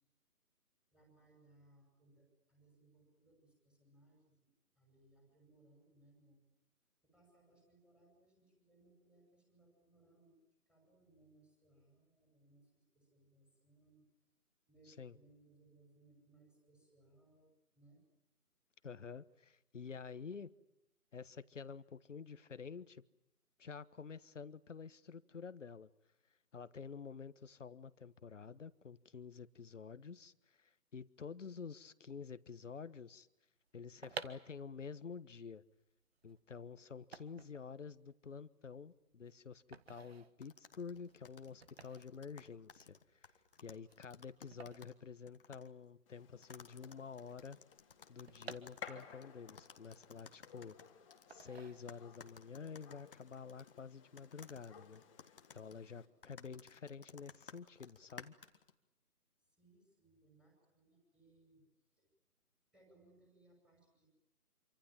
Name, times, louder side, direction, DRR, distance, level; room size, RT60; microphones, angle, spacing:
voice 1, 0.9-6.5 7.0-10.4 10.7-14.1 14.7-17.5 17.8-18.0 59.4-62.1 62.7-64.1, right 2 dB, ahead, 5.8 m, -68 dB
voice 2, 18.8-20.5 21.1-23.0 23.6-25.9 26.5-33.3 33.7-35.6 36.2-43.3 43.6-47.6 48.1-50.8 51.3-58.3, left 6 dB, 50° left, 1.4 m, -49 dB
sound 1, 33.8-45.9 46.2-46.3 46.4-49.3 49.7-50.7 51.3-52.3 52.6-52.9, right 5 dB, 40° right, 1.6 m, -53 dB
sound 2, 40.4-45.0 45.3-45.7 46.4-51.5 51.9-53.8 54.2-58.7, left 6 dB, 35° left, 1.6 m, -58 dB
Gunshot gunfire, 46.1-56.0, left 7 dB, 20° left, 2.8 m, -58 dB
27.0 x 25.5 x 7.5 m
figure-of-eight pair, 160°, 46 cm